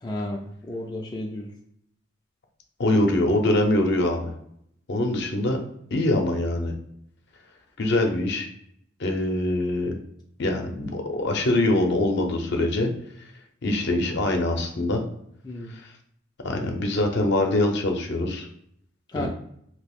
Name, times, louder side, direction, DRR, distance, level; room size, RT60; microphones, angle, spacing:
voice 1, 0.0-1.5 15.4-15.7 19.1-19.3, left 1 dB, 20° left, 0 dB, 0.3 m, -32 dB
voice 2, 2.8-4.3 4.9-5.6 5.9-6.7 7.8-8.5 9.0-9.9 10.4-12.9 13.6-15.0 16.4-18.5 19.1-19.3, left 1 dB, 60° left, 3 dB, 0.6 m, -23 dB
2.8 x 2.5 x 3.5 m, 0.71 s
head